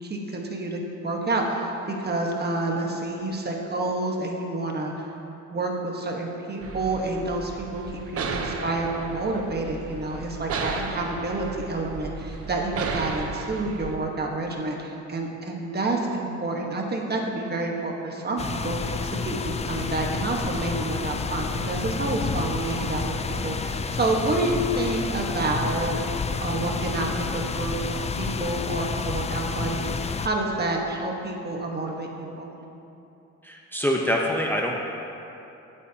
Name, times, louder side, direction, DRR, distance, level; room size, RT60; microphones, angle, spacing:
voice 1, 0.0-5.1 5.5-26.0 26.4-32.5, right 2 dB, 35° right, 0 dB, 1.4 m, -29 dB
sound 1, 6.6-14.0, right 4 dB, 50° right, 0.9 m, -34 dB
sound 2, 18.4-30.3, left 5 dB, 20° left, 0.4 m, -30 dB
voice 2, 33.4-34.8, equal, 5° left, -1 dB, 0.8 m, -25 dB
15.5 x 8.5 x 2.9 m, 2.9 s
cardioid pair, 90°, 30 cm